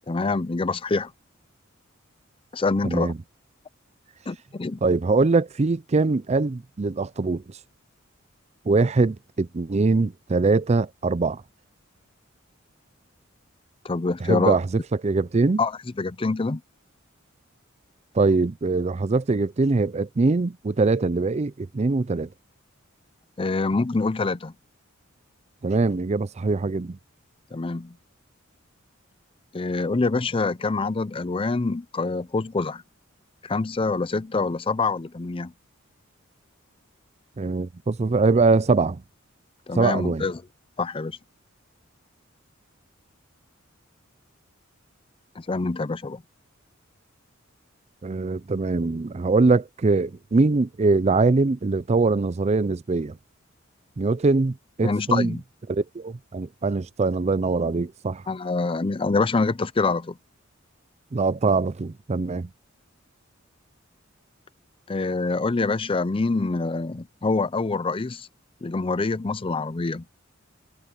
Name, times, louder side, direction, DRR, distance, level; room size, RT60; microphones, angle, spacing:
voice 1, 0.1-1.1 2.5-3.1 4.3-4.8 13.8-14.6 15.6-15.7 16.0-16.6 23.4-24.5 27.5-27.9 29.5-32.8 33.4-35.5 39.7-40.4 40.8-41.2 45.4-46.2 54.8-55.4 58.3-60.2 64.9-68.3 68.6-70.0, left 3 dB, 25° left, 0.5 m, -25 dB
voice 2, 2.8-3.2 4.8-7.6 8.7-11.4 14.2-15.6 18.1-22.3 25.6-27.0 37.4-39.0 39.8-40.2 48.0-53.2 54.0-55.3 55.7-58.2 61.1-62.5, right 3 dB, 30° right, 0.5 m, -22 dB
head